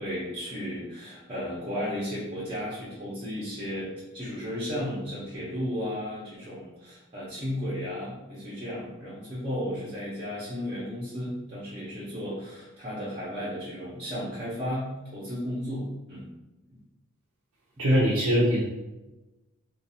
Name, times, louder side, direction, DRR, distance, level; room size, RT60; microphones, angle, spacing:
voice 1, 0.0-3.9 4.1-16.3, equal, 25° right, -8 dB, 0.7 m, -34 dB
voice 2, 17.8-18.6, equal, 80° right, -6 dB, 0.5 m, -22 dB
2.5 x 2.3 x 2.7 m, 1.0 s
head